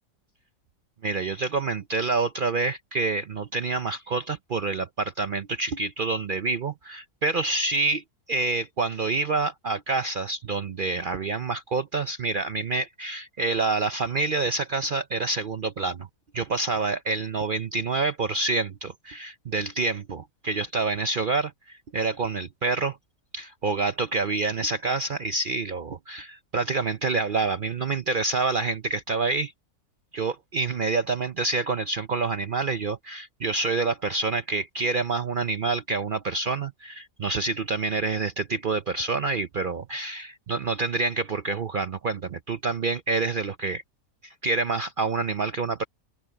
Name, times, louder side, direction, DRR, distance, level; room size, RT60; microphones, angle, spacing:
voice 1, 1.0-16.1 16.3-23.0 23.3-29.5 30.1-43.8 44.2-45.9, right 3 dB, 60° right, 0.5 m, -27 dB
open air
omnidirectional pair, 1.6 m